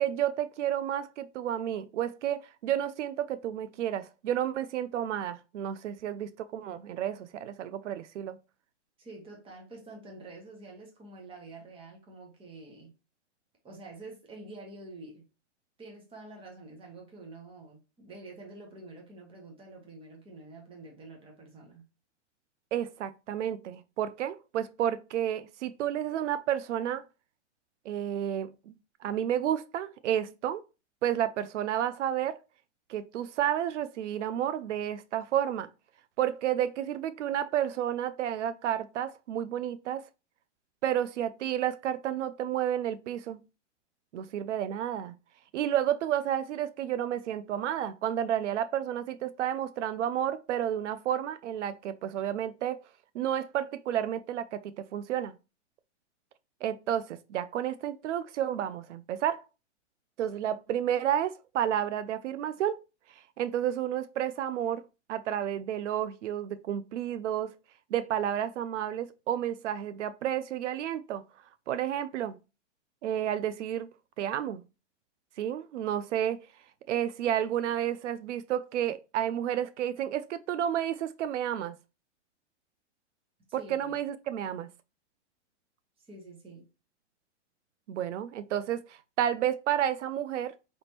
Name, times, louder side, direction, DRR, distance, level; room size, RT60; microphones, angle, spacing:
voice 1, 0.0-8.4 22.7-27.1 27.9-30.6 31.0-32.4 32.9-35.7 36.2-40.0 40.8-43.4 44.1-45.1 45.5-52.8 53.1-55.3 56.6-59.4 60.2-62.8 63.4-64.8 65.1-67.6 67.9-71.2 71.7-72.4 73.0-73.9 74.2-74.6 75.4-76.5 76.9-81.8 83.5-84.7 87.9-90.5, right 10 dB, 90° right, 0.5 m, -31 dB
voice 2, 9.0-12.9 13.6-15.3 15.8-21.8 83.5-83.9 86.0-86.7, right 2 dB, 15° right, 1.3 m, -47 dB
4.9 x 3.5 x 2.9 m
hypercardioid pair, 140°, 35 cm